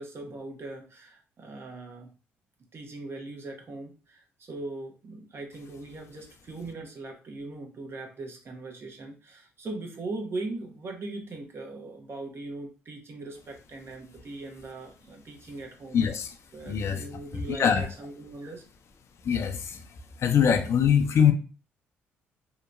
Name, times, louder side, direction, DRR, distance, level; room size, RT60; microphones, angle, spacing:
voice 1, 0.0-2.1 2.7-16.0 16.5-18.6, right 2 dB, 45° right, 2 dB, 0.8 m, -40 dB
voice 2, 15.9-16.3 16.6-17.0 17.5-17.9 19.2-19.8 20.2-21.3, left 8 dB, 50° left, 6 dB, 0.5 m, -23 dB
2.8 x 2.1 x 2.5 m, 0.36 s
hypercardioid pair, 55°, 6 cm